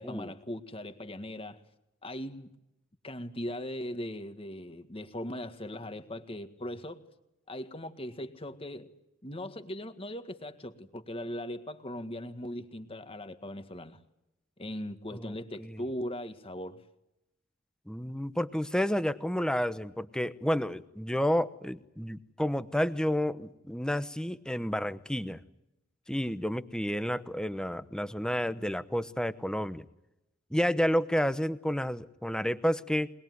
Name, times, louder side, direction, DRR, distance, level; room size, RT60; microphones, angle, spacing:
voice 1, 0.0-1.6 2.0-2.5 3.0-7.0 7.5-8.9 9.2-14.0 14.6-16.8, left 1 dB, 25° left, 1.8 m, -39 dB
voice 2, 15.1-15.8 17.9-25.4 26.1-29.9 30.5-33.1, equal, 5° left, 0.9 m, -30 dB
23.0 x 21.0 x 9.5 m
head